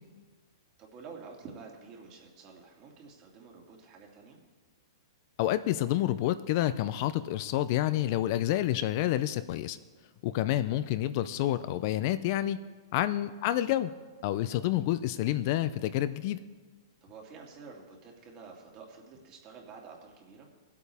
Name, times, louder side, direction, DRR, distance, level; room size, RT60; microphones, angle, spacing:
voice 1, 0.8-4.4 13.0-13.2 17.0-20.5, right 4 dB, 35° right, -1 dB, 2.5 m, -49 dB
voice 2, 5.4-9.8 10.2-12.6 12.9-13.9 14.2-16.4, left 13 dB, 50° left, 13 dB, 0.5 m, -28 dB
21.0 x 8.4 x 3.5 m, 1.4 s
hypercardioid pair, 135°, 2 cm